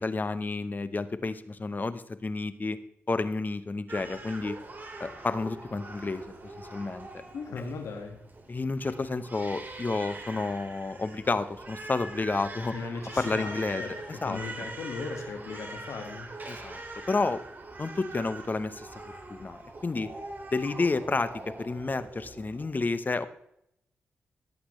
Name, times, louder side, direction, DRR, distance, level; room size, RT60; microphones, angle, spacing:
voice 1, 0.0-2.8 3.1-4.6 5.0-6.2 6.6-7.2 8.5-12.7 13.2-13.8 14.2-14.4 16.5-16.8 17.1-17.4 17.8-18.9 19.3-20.1 20.5-21.3 21.6-23.3, left 3 dB, 40° left, 13 dB, 1.0 m, -30 dB
Crying sobbing, 3.9-22.7, right 2 dB, 40° right, 2.5 m, -43 dB
voice 2, 7.3-8.2 12.7-16.3, left 4 dB, 85° left, 4 dB, 1.8 m, -38 dB
17.0 x 8.5 x 3.2 m, 0.76 s
cardioid pair, 50°, 5 cm